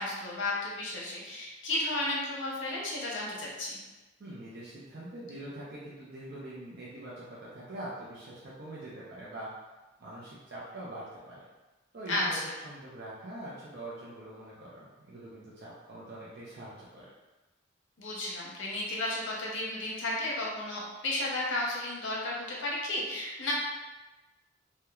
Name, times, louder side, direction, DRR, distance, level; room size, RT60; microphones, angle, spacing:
voice 1, 0.0-3.8 12.1-12.4 18.0-23.5, left 2 dB, 65° left, -3 dB, 0.7 m, -33 dB
voice 2, 4.2-9.5 10.0-11.4 11.9-12.4 12.6-17.1, right 1 dB, 55° right, -8 dB, 0.5 m, -44 dB
2.9 x 2.2 x 2.3 m, 1.1 s
head